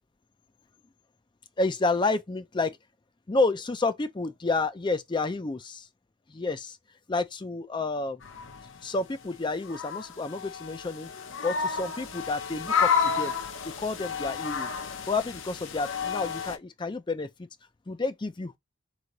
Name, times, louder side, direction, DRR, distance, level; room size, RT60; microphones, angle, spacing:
voice 1, 1.6-2.8 3.3-5.9 6.3-6.8 7.1-8.2 8.8-11.1 11.4-13.3 13.6-14.7 15.1-17.5 17.9-18.6, left 3 dB, 20° left, 0.4 m, -30 dB
sound 1, 8.2-8.8 9.6-16.6, left 6 dB, 60° left, 0.6 m, -31 dB
3.4 x 3.2 x 3.9 m
head